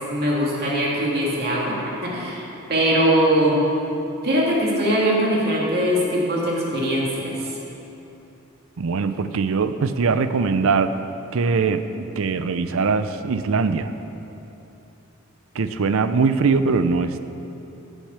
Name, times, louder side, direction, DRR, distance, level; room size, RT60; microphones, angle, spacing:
voice 1, 0.1-3.6 4.2-7.5, equal, 50° right, -4 dB, 2.4 m, -21 dB
voice 2, 8.8-10.9 11.3-13.9 15.5-17.2, right 4 dB, 65° right, 11 dB, 0.5 m, -21 dB
10.0 x 6.3 x 8.1 m, 2.9 s
head